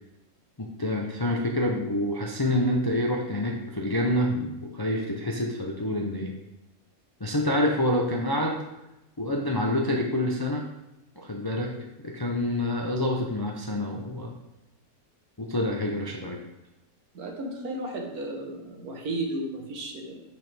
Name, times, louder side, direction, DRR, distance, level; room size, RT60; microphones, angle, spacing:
voice 1, 0.6-6.3 7.2-8.6 9.2-10.6 11.2-11.7 12.0-14.4 15.4-16.4, left 1 dB, 30° left, -1 dB, 0.4 m, -27 dB
voice 2, 17.1-20.2, right 1 dB, 80° right, 2 dB, 1.7 m, -34 dB
6.8 x 6.1 x 3.4 m, 0.93 s
omnidirectional pair, 1.6 m